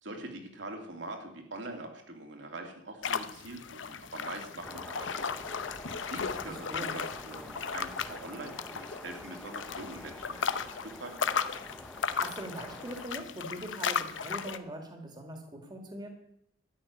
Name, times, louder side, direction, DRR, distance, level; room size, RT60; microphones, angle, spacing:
voice 1, 0.0-5.6 5.9-10.7 11.0-11.3, right 2 dB, 70° right, 3 dB, 2.8 m, -44 dB
sound 1, 3.0-14.6, left 6 dB, 80° left, 0.8 m, -36 dB
sound 2, 4.6-13.1, equal, 5° left, 0.8 m, -47 dB
voice 2, 6.4-7.0 11.8-16.1, right 1 dB, 20° right, 3 dB, 1.8 m, -42 dB
12.5 x 6.5 x 9.6 m, 0.73 s
head